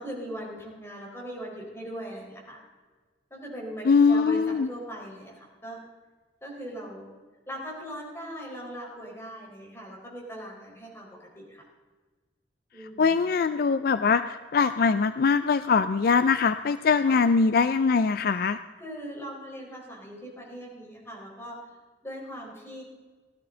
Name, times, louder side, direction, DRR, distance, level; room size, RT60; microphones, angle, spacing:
voice 1, 0.0-2.6 3.3-5.8 6.4-7.0 7.5-11.1 11.3-11.6 12.7-13.4 17.1-17.2 18.8-21.6 22.0-22.8, equal, 15° left, -3 dB, 4.3 m, -40 dB
voice 2, 3.9-4.7 13.0-18.6, left 5 dB, 55° left, 12 dB, 0.4 m, -22 dB
16.5 x 12.5 x 3.8 m, 1.4 s
head